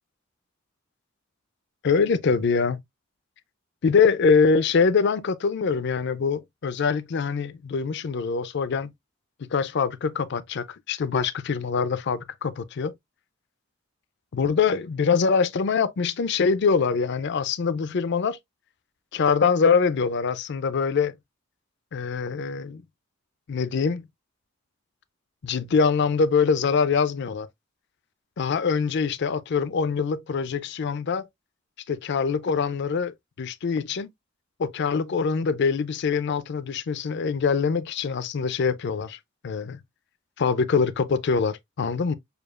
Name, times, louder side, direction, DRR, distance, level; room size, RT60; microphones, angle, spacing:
voice 1, 1.8-2.8 3.8-8.9 9.5-12.9 14.3-18.4 19.1-21.1 21.9-22.8 23.5-24.0 25.4-27.5 28.4-31.3 31.9-34.1 34.6-39.2 39.4-39.8 40.4-42.2, left 5 dB, 55° left, 0.4 m, -24 dB
6.7 x 2.3 x 2.3 m
head